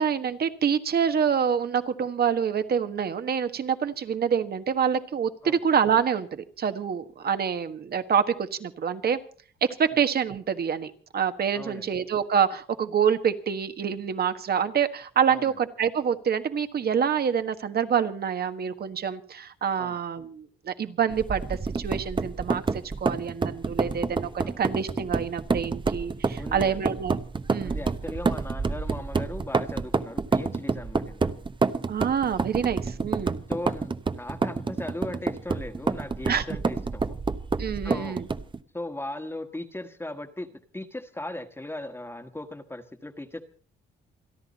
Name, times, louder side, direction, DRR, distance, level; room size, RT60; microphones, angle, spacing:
voice 1, 0.0-9.2 9.8-27.2 27.5-27.8 31.9-33.4 36.3-36.4 37.6-38.3, right 7 dB, 50° right, 10 dB, 1.5 m, -26 dB
voice 2, 11.5-11.9 15.3-15.6 19.8-20.0 24.4-24.5 26.4-26.9 27.6-31.4 33.5-37.2 37.8-38.2 38.7-43.4, left 1 dB, 10° left, 6 dB, 1.5 m, -38 dB
sound 1, 21.1-38.6, right 4 dB, 25° right, 0.9 m, -28 dB
27.5 x 10.5 x 4.2 m, 0.43 s
cardioid pair, 90°, 20 cm